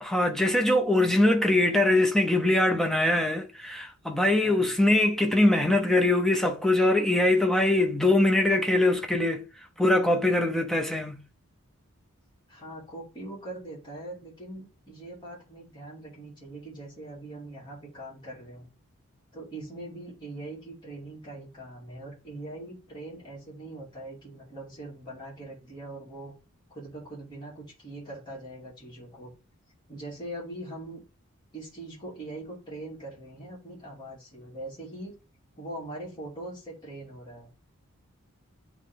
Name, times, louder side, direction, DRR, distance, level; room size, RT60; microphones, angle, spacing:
voice 1, 0.0-9.5 9.8-11.2, left 1 dB, ahead, 0.7 m, -23 dB
voice 2, 4.4-4.8 12.5-18.7 19.3-26.3 26.7-29.3 29.9-31.0 31.5-35.1 35.6-37.5, right 1 dB, 20° left, 2.5 m, -42 dB
9.0 x 3.1 x 3.5 m
head